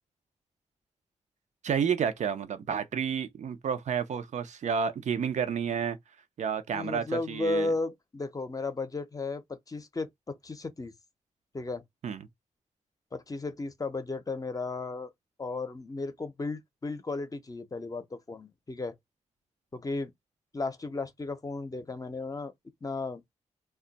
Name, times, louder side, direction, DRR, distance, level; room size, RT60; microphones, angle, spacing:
voice 1, 1.6-6.0 6.4-7.7 12.0-12.3, right 7 dB, 70° right, 0.6 m, -30 dB
voice 2, 6.7-10.9 11.5-11.8 13.1-15.1 15.4-19.0 19.7-20.1 20.5-22.5 22.8-23.2, left 3 dB, 30° left, 0.6 m, -34 dB
2.3 x 2.1 x 3.9 m
cardioid pair, 65°, 12 cm